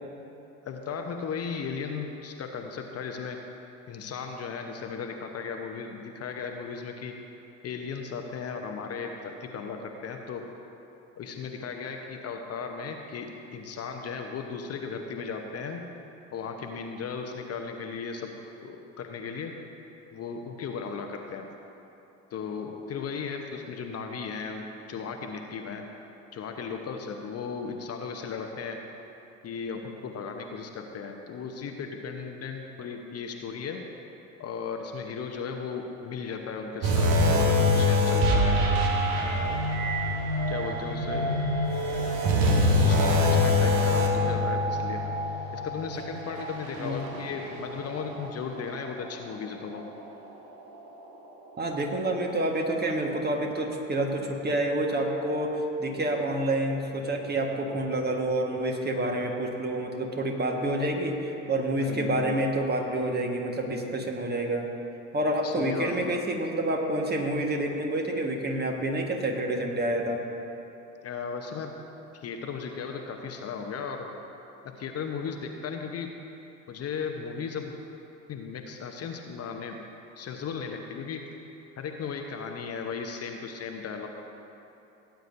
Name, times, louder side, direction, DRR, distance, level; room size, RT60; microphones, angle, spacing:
voice 1, 0.6-3.4 3.9-7.1 7.6-10.5 11.2-15.8 16.3-18.4 18.6-19.5 20.1-21.5 22.3-25.9 26.3-28.8 29.4-33.8 34.4-38.7 39.1-39.6 40.5-41.3 42.7-45.1 45.5-49.8 61.8-62.3 65.4-66.1 71.0-71.7 72.1-74.1 74.8-76.1 76.7-77.7 78.3-79.8 80.2-81.2 81.8-84.1, left 5 dB, 40° left, 3 dB, 0.9 m, -36 dB
sound 1, 36.8-48.3 48.6-48.9 49.5-49.6, left 1 dB, 65° right, 1.5 m, -25 dB
voice 2, 51.6-64.7 65.1-70.2, right 1 dB, 25° right, 1 dB, 1.5 m, -28 dB
17.5 x 9.2 x 2.7 m, 3.0 s
figure-of-eight pair, 65°, 40 cm